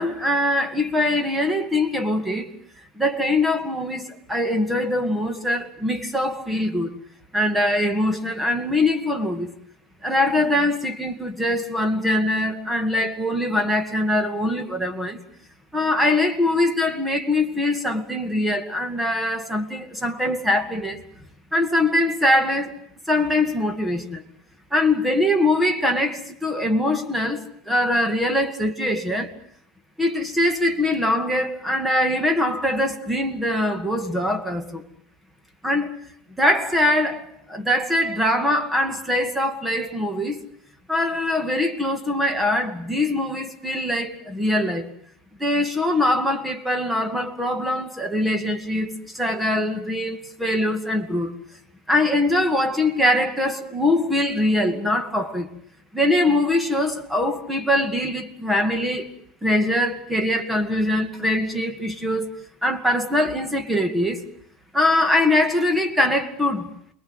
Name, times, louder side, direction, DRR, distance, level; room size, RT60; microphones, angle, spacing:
voice 1, 0.0-2.5 3.0-6.9 7.3-9.5 10.0-15.2 15.7-21.0 21.5-22.8 23.1-24.2 24.7-29.3 30.0-34.9 35.6-36.0 36.4-40.4 40.9-44.9 45.4-51.3 51.9-55.5 55.9-59.1 59.4-62.4 62.6-64.2 64.7-66.7, left 1 dB, 5° right, 2.1 m, -22 dB
29.0 x 22.0 x 8.0 m
cardioid pair, 160°, 0 cm